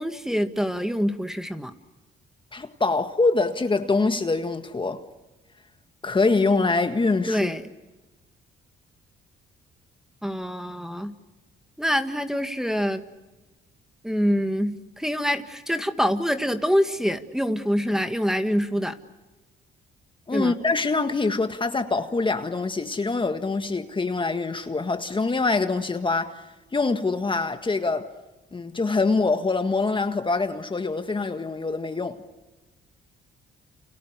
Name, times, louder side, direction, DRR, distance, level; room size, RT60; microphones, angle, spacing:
voice 1, 0.0-1.7 7.3-7.6 10.2-11.2 11.8-13.0 14.0-19.0 20.3-20.6, equal, ahead, 1.9 m, -25 dB
voice 2, 2.5-5.0 6.0-7.5 20.3-26.5 26.7-28.1 28.5-32.2, left 3 dB, 25° left, 1.7 m, -24 dB
29.5 x 29.0 x 6.8 m
cardioid pair, 90°, 20 cm